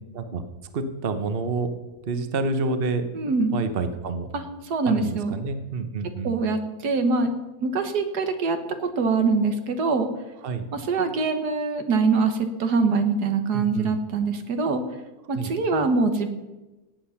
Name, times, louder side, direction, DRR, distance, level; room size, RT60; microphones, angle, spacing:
voice 1, 0.7-1.7 2.1-3.1 3.5-4.3 4.9-6.4 10.4-10.7 13.5-14.0 15.3-15.5, right 3 dB, 40° right, 9 dB, 1.1 m, -28 dB
voice 2, 3.1-3.6 4.3-5.4 6.2-7.3 7.6-10.1 10.7-14.8 15.3-16.3, right 4 dB, 85° right, 7 dB, 1.9 m, -24 dB
17.5 x 8.5 x 5.8 m, 1.1 s
omnidirectional pair, 1.7 m